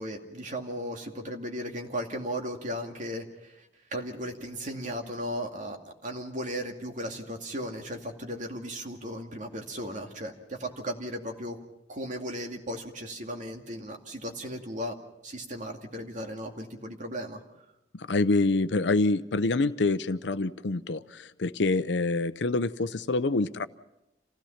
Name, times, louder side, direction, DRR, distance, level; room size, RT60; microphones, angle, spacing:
voice 1, 0.0-3.7 3.9-5.8 6.0-11.6 11.9-14.9 15.2-17.4, equal, 45° right, 2 dB, 2.3 m, -36 dB
voice 2, 17.9-23.7, left 3 dB, 75° left, 14 dB, 0.7 m, -26 dB
27.5 x 16.5 x 5.8 m, 0.90 s
head